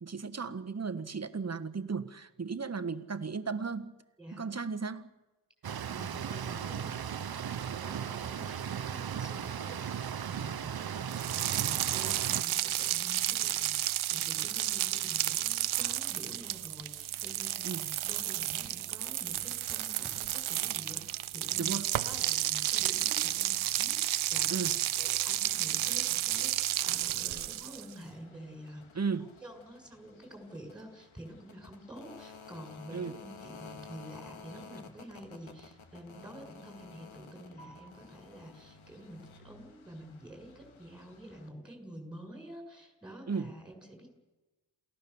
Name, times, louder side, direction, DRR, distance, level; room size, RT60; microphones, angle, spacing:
voice 1, 0.0-3.9 4.3-5.1 17.6-17.9 21.6-21.9 24.5-24.8 28.9-29.3 32.9-33.2 43.3-43.5, right 5 dB, 35° right, 10 dB, 1.4 m, -35 dB
voice 2, 4.2-4.5 5.9-7.1 7.3-21.8 22.0-28.9 29.4-44.1, equal, ahead, 3 dB, 6.7 m, -48 dB
sound 1, 5.6-12.4, right 8 dB, 50° right, 0.9 m, -37 dB
sound 2, 11.1-27.9, right 13 dB, 90° right, 0.7 m, -32 dB
sound 3, 26.7-41.5, left 5 dB, 90° left, 2.2 m, -53 dB
28.5 x 17.0 x 7.1 m, 1.1 s
cardioid pair, 75°, 47 cm